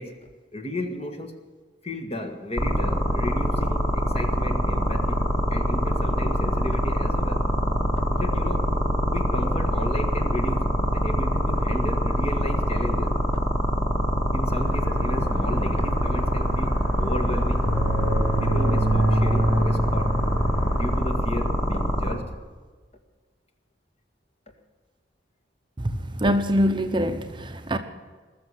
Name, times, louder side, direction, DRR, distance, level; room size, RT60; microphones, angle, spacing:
voice 1, 0.0-1.3 1.8-5.2 5.5-7.5 8.1-8.7 9.1-13.2 14.3-17.7 18.4-20.2 20.7-22.4, left 1 dB, 35° left, 6 dB, 1.7 m, -33 dB
sound 1, 2.6-22.1, equal, 20° left, 2.0 m, -24 dB
sound 2, 14.6-21.0, right 1 dB, 70° left, 4.6 m, -26 dB
voice 2, 26.2-27.8, equal, 25° right, 7 dB, 0.8 m, -23 dB
20.0 x 6.9 x 9.9 m, 1.4 s
head